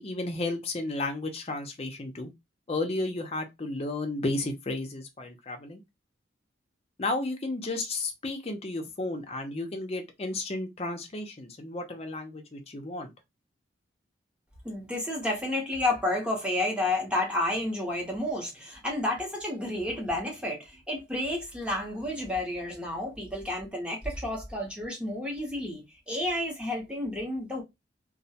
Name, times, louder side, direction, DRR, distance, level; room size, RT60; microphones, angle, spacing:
voice 1, 0.0-2.3 2.7-5.8 7.0-13.1, left 2 dB, 30° left, 0.5 m, -33 dB
voice 2, 14.6-27.6, left 1 dB, 5° right, 0.7 m, -31 dB
2.3 x 2.1 x 2.7 m
head